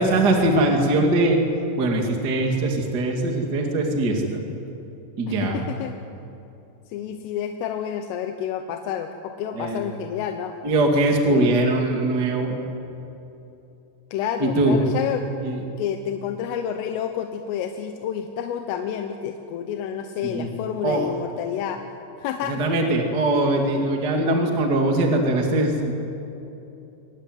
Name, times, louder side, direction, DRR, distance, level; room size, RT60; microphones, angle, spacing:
voice 1, 0.0-1.4 1.8-4.4 5.2-5.7 9.5-9.8 10.6-12.5 14.4-14.8 15.4-15.6 20.2-20.5 20.8-21.1 22.5-25.9, right 2 dB, 30° right, 2 dB, 2.0 m, -21 dB
voice 2, 5.3-6.0 6.9-10.5 11.2-11.6 14.1-15.3 15.8-21.8 22.2-22.6, left 9 dB, 85° left, 6 dB, 3.6 m, -29 dB
24.0 x 18.5 x 9.4 m, 2.9 s
omnidirectional pair, 5.7 m